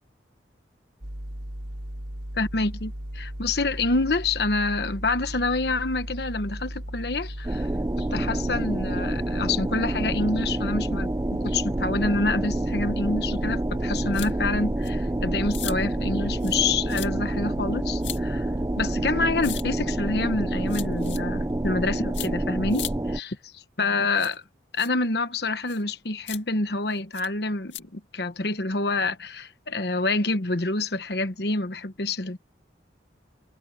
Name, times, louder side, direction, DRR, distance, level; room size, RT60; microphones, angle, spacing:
sound 1, 1.0-19.4, equal, 80° right, 4.5 m, -36 dB
voice 1, 2.4-7.7 8.0-18.5 18.8-22.8 23.1-24.4 24.7-32.4, left 3 dB, 60° left, 1.2 m, -27 dB
sound 2, 7.4-23.2, right 1 dB, 15° right, 0.4 m, -28 dB
sound 3, 14.1-14.3 14.8-14.9 15.5-15.8 16.4-16.6 16.9-17.1 18.0-18.2 19.4-19.6 20.7-21.2 22.1-22.3 22.7-22.9 24.2-24.4 24.8-24.9 25.7-25.8 26.3-26.4 27.1-27.3 27.7-27.8, left 13 dB, 90° left, 2.1 m, -36 dB
head